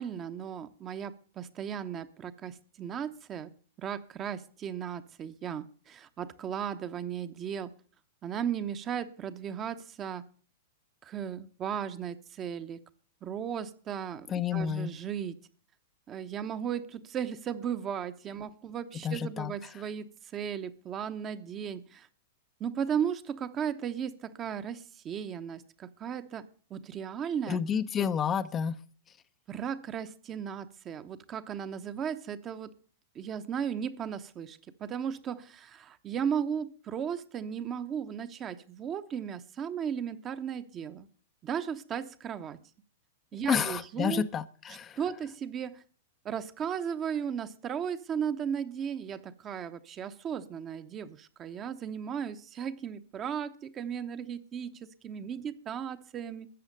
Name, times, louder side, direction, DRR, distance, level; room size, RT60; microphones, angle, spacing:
voice 1, 0.0-3.5 3.8-7.7 8.2-10.2 11.0-12.8 13.2-14.3 14.5-15.3 16.1-22.1 22.6-27.6 29.5-32.7 33.1-41.1 41.4-42.6 43.3-44.3 45.0-45.8 46.2-56.5, right 8 dB, 30° right, 11 dB, 0.9 m, -36 dB
voice 2, 14.3-14.9 19.0-19.7 27.5-28.8 43.5-45.0, left 7 dB, 25° left, 11 dB, 0.6 m, -30 dB
13.5 x 8.1 x 6.6 m, 0.42 s
figure-of-eight pair, 100°, 0 cm